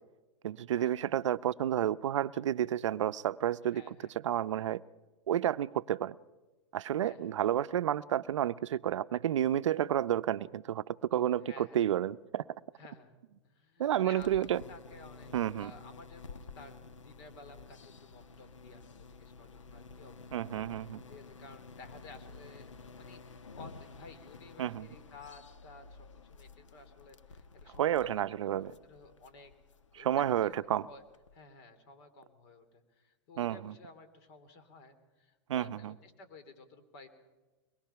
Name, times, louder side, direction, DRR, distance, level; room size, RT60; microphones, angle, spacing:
voice 1, 0.4-3.8 4.2-4.8 5.3-6.2 6.7-12.4 13.8-14.6 15.3-15.7 20.3-21.0 24.6-24.9 27.8-28.7 29.9-30.8 33.4-33.7 35.5-35.9, right 11 dB, 75° right, 16 dB, 0.6 m, -30 dB
voice 2, 3.7-4.2 7.0-7.4 11.5-11.8 12.8-13.2 13.4-15.3 15.6-20.5 21.1-22.7 23.0-26.0 26.2-29.5 29.9-30.5 30.8-31.0 31.3-37.2, left 3 dB, 55° left, 10 dB, 3.1 m, -54 dB
sound 1, 14.2-31.4, left 4 dB, 90° left, 1.1 m, -52 dB
23.0 x 21.5 x 5.7 m, 1.2 s
hypercardioid pair, 115°, 16 cm